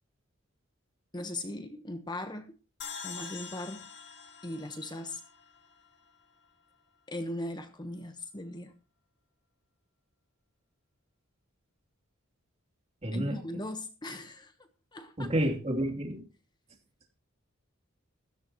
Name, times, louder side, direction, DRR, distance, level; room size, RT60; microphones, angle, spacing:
voice 1, 1.1-2.6 3.0-3.9 4.4-5.2 7.1-8.7 13.1-14.5 14.9-15.3, left 1 dB, 20° left, 1.1 m, -39 dB
sound 1, 2.8-6.1, left 6 dB, 60° left, 2.6 m, -45 dB
voice 2, 13.0-13.4 15.2-16.2, right 1 dB, 30° right, 3.1 m, -30 dB
16.5 x 14.0 x 3.0 m
head